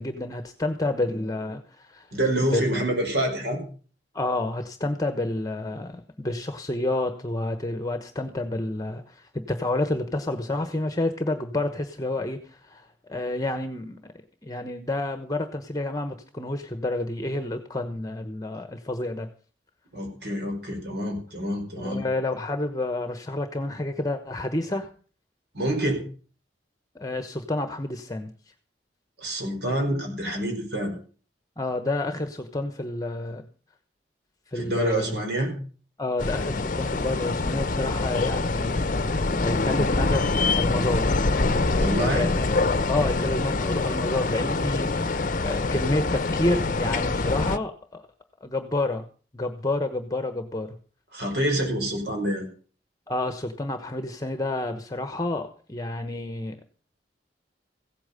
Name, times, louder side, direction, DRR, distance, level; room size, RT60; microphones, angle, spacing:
voice 1, 0.0-2.1 2.5-2.9 4.1-14.1 14.4-19.3 21.8-24.9 26.9-28.3 31.6-33.4 34.5-35.2 36.0-41.3 41.9-48.0 48.4-49.0 49.3-50.8 53.1-56.7, left 2 dB, 20° left, 8 dB, 1.1 m, -29 dB
voice 2, 2.1-3.6 19.9-22.0 25.5-26.0 29.2-30.9 34.5-35.5 41.8-42.3 51.1-52.5, right 1 dB, 65° right, 3 dB, 5.1 m, -27 dB
sound 1, 36.2-47.6, left 3 dB, 50° left, 0.8 m, -25 dB
16.0 x 8.8 x 6.8 m, 0.41 s
head